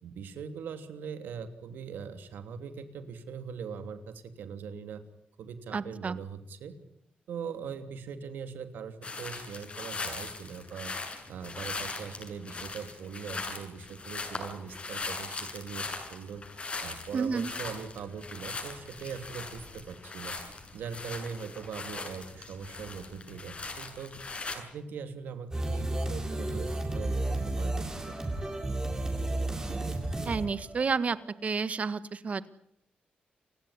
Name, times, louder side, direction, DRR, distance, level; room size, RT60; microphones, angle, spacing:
voice 1, 0.0-5.0 5.4-6.7 7.3-10.9 11.3-16.4 16.8-28.2, right 6 dB, 90° right, 9 dB, 3.0 m, -41 dB
voice 2, 5.7-6.2 17.1-17.5 30.2-31.2 31.4-32.5, right 5 dB, 45° right, 14 dB, 1.7 m, -30 dB
sound 1, 9.0-24.6, left 3 dB, 40° left, 7.4 m, -40 dB
sound 2, 25.5-31.3, right 2 dB, 20° right, 7.1 m, -32 dB
29.5 x 16.5 x 10.0 m, 0.77 s
cardioid pair, 90°, 3 cm